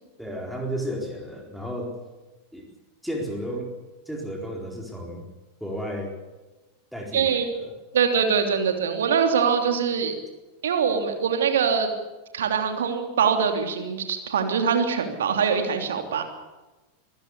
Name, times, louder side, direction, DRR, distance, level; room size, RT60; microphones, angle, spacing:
voice 1, 0.2-1.9 2.5-2.7 3.0-3.7 4.1-5.2 5.6-6.1 6.9-7.7, equal, ahead, 0 dB, 4.2 m, -33 dB
voice 2, 7.1-7.4 7.9-10.1 10.6-11.9 12.3-16.2, right 6 dB, 65° right, 6 dB, 3.1 m, -23 dB
25.5 x 16.0 x 8.3 m, 1.1 s
figure-of-eight pair, 90°, 0 cm